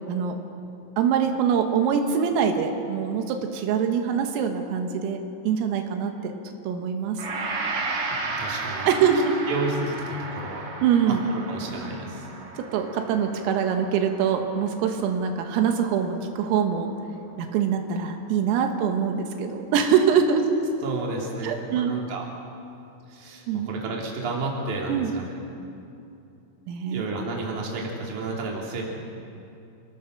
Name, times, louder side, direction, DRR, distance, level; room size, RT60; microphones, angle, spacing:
voice 1, 1.0-6.3 6.7-7.2 8.9-9.4 10.8-11.3 12.6-16.9 17.4-20.5 21.4-21.9 23.5-23.7 24.9-25.1 26.7-27.0, right 7 dB, 85° right, 4 dB, 4.1 m, -24 dB
Gong, 7.2-15.6 15.9-16.1, right 3 dB, 60° right, 1.5 m, -34 dB
voice 2, 8.1-8.9 9.5-10.7 11.1-12.3 20.8-22.3 23.1-25.3 26.9-28.8, right 3 dB, 40° right, -2 dB, 3.9 m, -32 dB
28.5 x 18.0 x 6.5 m, 2.7 s
omnidirectional pair, 5.9 m